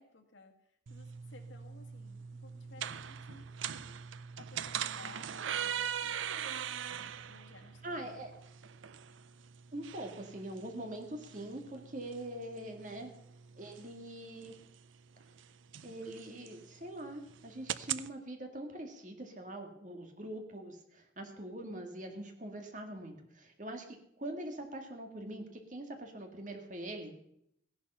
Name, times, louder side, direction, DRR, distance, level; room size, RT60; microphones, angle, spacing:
voice 1, 0.0-4.0 4.4-6.2 7.3-8.2, left 3 dB, 80° left, 3 dB, 1.9 m, -58 dB
sound 1, 0.9-18.1, right 9 dB, 85° right, 0.6 m, -42 dB
voice 2, 7.8-8.3 9.7-13.1 13.6-14.6 15.8-27.1, right 1 dB, 40° right, 4 dB, 2.1 m, -43 dB
15.5 x 11.0 x 5.6 m, 0.75 s
head